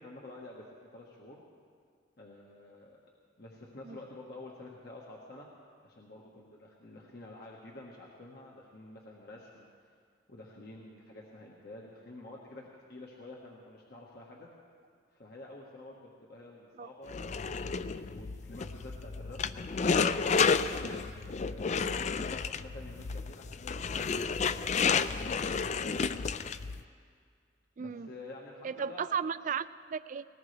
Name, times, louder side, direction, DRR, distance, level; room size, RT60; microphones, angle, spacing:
voice 1, 0.0-1.4 2.2-3.0 3.4-5.5 5.8-9.9 10.3-14.5 15.1-20.3 20.8-25.6 27.8-29.2, left 2 dB, 55° left, -3 dB, 1.5 m, -49 dB
sound 1, 17.1-26.8, left 5 dB, 40° left, 0.4 m, -31 dB
voice 2, 27.8-28.1 28.6-30.2, right 7 dB, 45° right, 15 dB, 0.3 m, -35 dB
20.5 x 18.5 x 3.4 m, 2.1 s
head